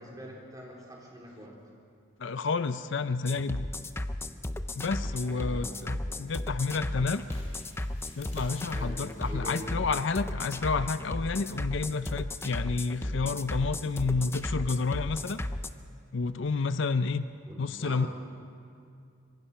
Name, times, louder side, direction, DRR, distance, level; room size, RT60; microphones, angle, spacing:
voice 1, 0.0-1.6 5.2-6.3 8.7-9.7 17.4-18.1, equal, 15° right, -2 dB, 4.1 m, -44 dB
voice 2, 2.2-3.7 4.8-7.2 8.2-15.4 16.1-17.2 17.6-18.1, left 4 dB, 60° left, 12 dB, 0.5 m, -30 dB
sound 1, 3.2-15.7, left 1 dB, 10° left, 0.5 m, -34 dB
sound 2, 5.5-10.6, left 3 dB, 30° left, 4.7 m, -57 dB
25.5 x 23.5 x 5.6 m, 2.4 s
head